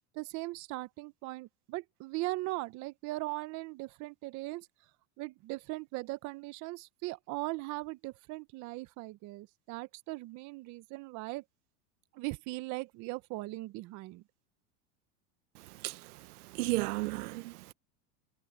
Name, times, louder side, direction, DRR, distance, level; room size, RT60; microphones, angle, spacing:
voice 1, 0.1-4.7 5.2-11.4 12.1-14.2, right 21 dB, 40° right, 0.7 m, -39 dB
voice 2, 15.5-17.7, right 20 dB, 85° right, 1.0 m, -35 dB
supercardioid pair, 140°, 44 cm